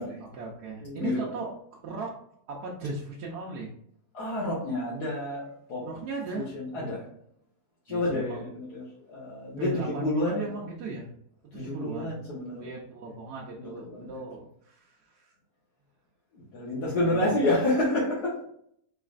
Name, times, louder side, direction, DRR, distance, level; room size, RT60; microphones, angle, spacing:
voice 1, 0.2-1.6 1.8-2.2 2.5-3.7 5.8-6.9 7.9-8.4 9.6-11.1 11.5-12.1 12.6-15.3 17.0-17.4, right 3 dB, 85° right, -4 dB, 1.3 m, -37 dB
voice 2, 0.8-1.4 4.1-5.8 6.3-7.0 7.9-10.4 11.5-12.7 13.6-14.2 16.3-18.3, left 1 dB, 85° left, -7 dB, 1.6 m, -29 dB
4.1 x 3.3 x 2.4 m, 0.69 s
omnidirectional pair, 1.7 m